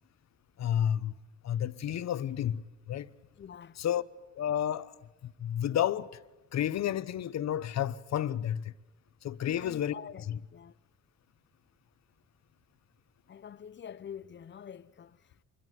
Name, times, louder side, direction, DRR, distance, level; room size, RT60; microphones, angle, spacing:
voice 1, 0.6-1.1 1.4-3.1 3.8-4.0 4.3-5.0 5.2-6.1 6.5-8.7 9.2-9.9 10.3-10.4, left 10 dB, 60° left, 1.0 m, -31 dB
voice 2, 3.4-3.8 9.6-10.2 10.5-10.7 13.3-15.4, left 8 dB, 40° left, 0.8 m, -46 dB
25.5 x 22.5 x 9.4 m
cardioid pair, 90°, 30 cm